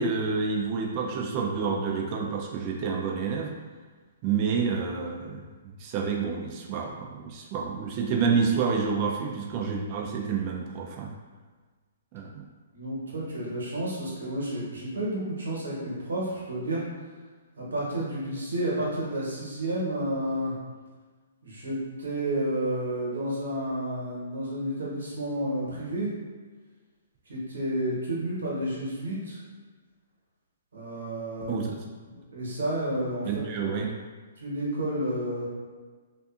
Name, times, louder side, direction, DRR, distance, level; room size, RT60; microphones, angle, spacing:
voice 1, 0.0-3.5 4.2-5.4 5.8-11.1 12.1-12.4 31.5-31.8 33.2-33.9, right 5 dB, 35° right, -1 dB, 0.4 m, -28 dB
voice 2, 12.7-16.8 17.6-20.5 21.4-26.1 27.3-29.4 30.7-31.6 32.1-33.3 33.6-33.7 34.4-35.5, right 1 dB, 85° right, -5 dB, 1.1 m, -31 dB
2.5 x 2.4 x 2.4 m, 1.4 s
hypercardioid pair, 140°, 0 cm